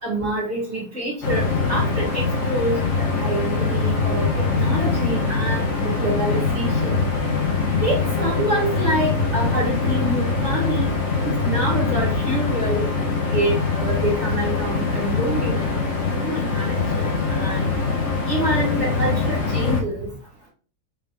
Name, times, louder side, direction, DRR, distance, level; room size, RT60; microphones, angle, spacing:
voice 1, 0.0-7.1 7.8-10.9 11.3-12.8 13.3-15.7 16.2-17.6 18.3-20.1, right 1 dB, 45° right, -6 dB, 2.0 m, -27 dB
sound 1, 1.2-19.8, left 4 dB, 50° left, 1.1 m, -23 dB
5.0 x 2.5 x 3.6 m, 0.40 s
omnidirectional pair, 1.7 m